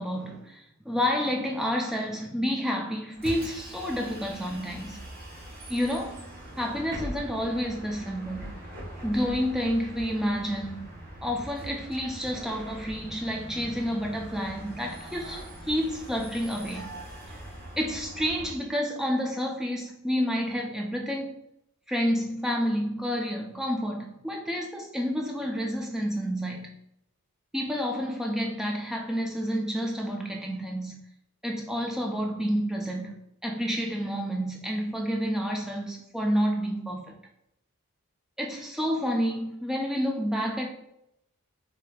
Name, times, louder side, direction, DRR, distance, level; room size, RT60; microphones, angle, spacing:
voice 1, 0.0-5.0 5.7-6.2 6.6-8.5 9.0-10.9 11.2-16.9 17.3-17.4 17.8-21.3 21.9-26.7 27.5-31.0 31.4-33.1 33.4-37.1 38.4-40.7, equal, ahead, -1 dB, 0.4 m, -29 dB
Bus, 3.1-18.6, right 1 dB, 45° right, 0.9 m, -42 dB
4.9 x 2.8 x 2.3 m, 0.80 s
head